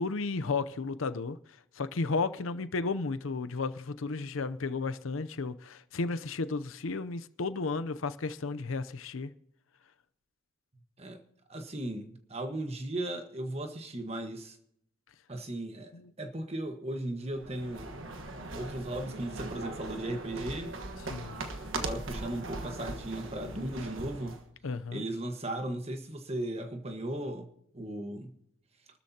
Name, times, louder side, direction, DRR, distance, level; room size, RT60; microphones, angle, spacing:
voice 1, 0.0-1.4 1.8-9.3 15.9-16.1 21.1-21.4 24.6-25.0, left 3 dB, 85° left, 0.6 m, -33 dB
voice 2, 11.5-14.6 15.3-15.9 16.2-18.0 18.5-20.7 21.7-24.4 24.9-27.5 27.7-28.3, right 1 dB, 30° right, 1.4 m, -36 dB
sound 1, 17.3-24.5, right 2 dB, 80° right, 1.4 m, -40 dB
26.5 x 13.0 x 2.8 m
head